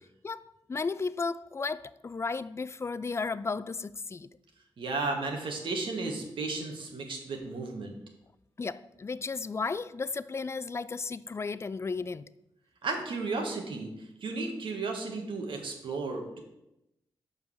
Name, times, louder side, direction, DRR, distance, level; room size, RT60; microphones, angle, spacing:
voice 1, 0.2-4.3 8.6-12.3, left 4 dB, 30° left, 0.3 m, -34 dB
voice 2, 4.8-7.9 12.8-13.9 14.2-16.4, right 3 dB, 75° right, 1.4 m, -34 dB
5.3 x 4.7 x 6.2 m
cardioid pair, 65°, 9 cm